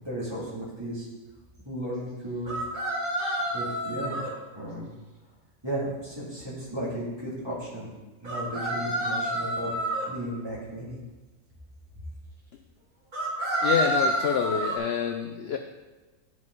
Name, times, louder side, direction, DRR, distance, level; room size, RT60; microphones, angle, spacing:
voice 1, 0.0-1.1 1.6-2.6 3.5-4.3 4.5-4.9 5.6-7.9 8.2-9.7 10.1-11.0, right 1 dB, 15° right, -8 dB, 2.8 m, -34 dB
sound 1, 2.5-4.3 8.2-10.1 13.1-14.8, right 1 dB, 30° right, 1.8 m, -28 dB
voice 2, 13.6-15.6, left 7 dB, 65° left, 5 dB, 0.6 m, -27 dB
11.0 x 5.4 x 4.0 m, 1.2 s
omnidirectional pair, 1.6 m